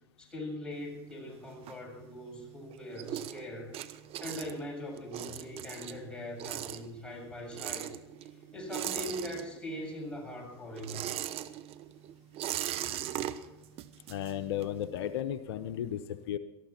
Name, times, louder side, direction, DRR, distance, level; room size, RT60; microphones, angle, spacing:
voice 1, 0.2-3.7 4.2-7.9 8.5-11.1, left 1 dB, 5° left, -2 dB, 7.1 m, -41 dB
sound 1, 0.7-2.3 2.7-9.9 10.1-14.8, right 12 dB, 45° right, 1.0 m, -39 dB
voice 2, 14.1-16.4, left 10 dB, 70° left, 9 dB, 0.8 m, -34 dB
18.5 x 14.0 x 4.4 m, 0.99 s
hypercardioid pair, 90°, 14 cm